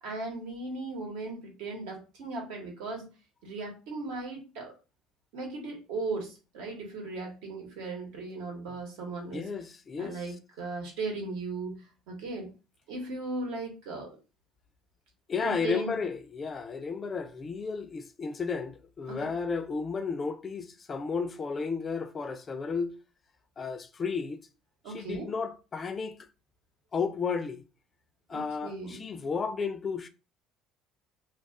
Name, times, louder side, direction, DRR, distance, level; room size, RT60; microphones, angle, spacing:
voice 1, 0.0-3.1 3.4-4.7 5.3-9.5 10.0-12.5 12.9-14.2 15.4-15.9 19.1-19.2 24.8-25.3 28.3-29.0, right 3 dB, 80° right, 1.1 m, -37 dB
voice 2, 9.3-10.2 15.3-22.9 23.6-24.4 24.9-26.2 26.9-27.6 28.3-30.1, left 5 dB, 30° left, 0.3 m, -33 dB
2.3 x 2.3 x 3.4 m
supercardioid pair, 105°, 0 cm